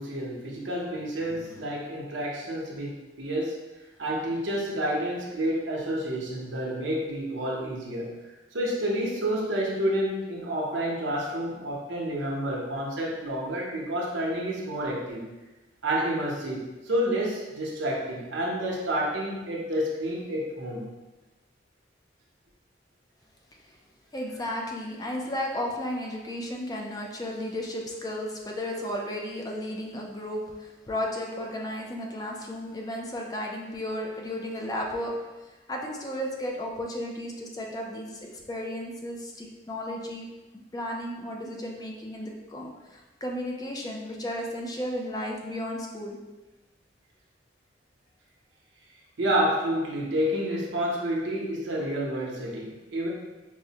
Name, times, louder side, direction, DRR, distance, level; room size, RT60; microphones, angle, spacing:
voice 1, 0.0-3.6 4.0-8.1 8.5-15.2 15.8-20.8 49.2-53.1, equal, 90° right, -3 dB, 0.8 m, -29 dB
voice 2, 1.2-1.7 23.6-23.8 24.1-35.3 35.7-40.3 40.7-46.2, left 1 dB, 20° left, 0 dB, 0.4 m, -34 dB
4.6 x 2.1 x 2.8 m, 1.1 s
head